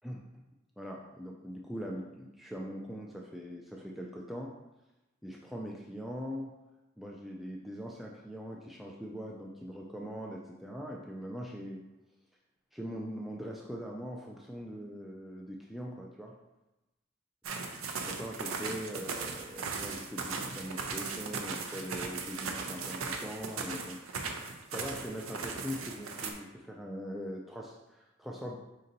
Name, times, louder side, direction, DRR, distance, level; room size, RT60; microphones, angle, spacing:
voice 1, 0.8-4.5 5.2-6.5 7.0-11.8 12.7-16.3 18.0-24.0 24.7-28.6, equal, ahead, -3 dB, 0.3 m, -41 dB
sound 1, 17.4-26.3, right 4 dB, 85° right, 0.6 m, -38 dB
5.2 x 2.7 x 3.9 m, 0.98 s
head